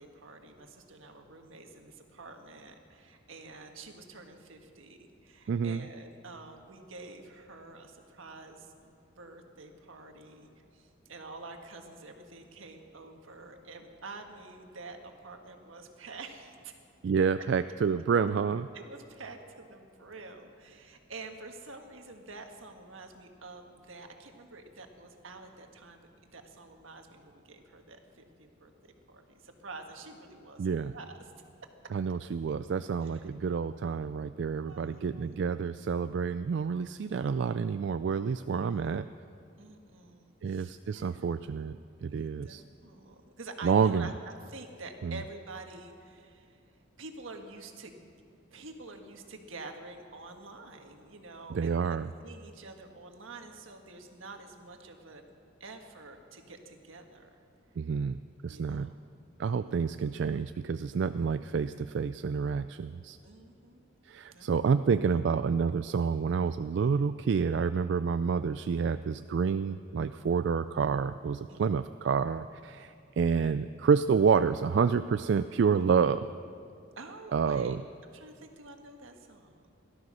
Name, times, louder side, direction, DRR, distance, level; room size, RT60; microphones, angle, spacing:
voice 1, 0.0-16.7 17.4-17.5 18.7-28.7 29.1-31.1 33.1-33.2 34.7-35.3 38.7-38.8 39.6-41.3 42.1-44.1 44.5-46.6 47.0-48.0 48.5-52.0 52.2-55.3 55.6-57.4 58.5-58.9 59.4-59.7 63.2-63.8 64.3-64.5 71.5-71.6 77.0-77.8 78.1-79.7, right 3 dB, 80° right, 4 dB, 1.5 m, -48 dB
voice 2, 5.5-5.8 17.0-18.7 30.6-30.9 31.9-39.1 40.4-42.6 43.6-44.1 45.0-45.2 51.5-52.1 57.8-58.2 58.4-58.9 59.4-63.2 64.0-76.3 77.3-77.8, right 6 dB, 60° right, 12 dB, 0.3 m, -28 dB
17.5 x 12.5 x 6.2 m, 2.4 s
head